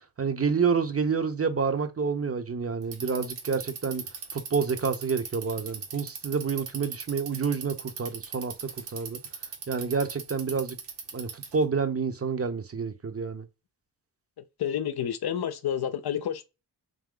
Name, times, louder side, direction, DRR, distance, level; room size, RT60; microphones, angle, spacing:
voice 1, 0.2-4.0 4.3-9.2 9.7-10.8 11.1-13.5, right 5 dB, 35° right, 0.7 m, -28 dB
Bicycle, 2.8-11.6, right 6 dB, 75° right, 1.2 m, -38 dB
voice 2, 14.6-16.5, left 9 dB, 60° left, 0.6 m, -29 dB
3.6 x 2.8 x 3.7 m
cardioid pair, 60°, 43 cm